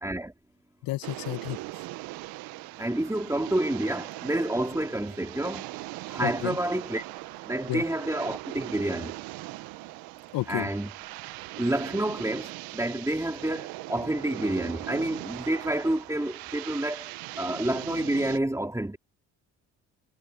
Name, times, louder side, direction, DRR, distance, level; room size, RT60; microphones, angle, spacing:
voice 1, 0.0-0.3 2.8-5.7 6.1-7.0 7.4-9.2 10.5-10.9 11.6-17.1 17.4-19.0, right 1 dB, 10° right, 4.4 m, -29 dB
voice 2, 0.8-1.6 6.2-6.6 7.7-7.8 10.3-10.7, left 18 dB, 70° left, 2.0 m, -31 dB
sound 1, 1.0-18.4, right 19 dB, 70° right, 1.5 m, -40 dB
hypercardioid pair, 60°, 36 cm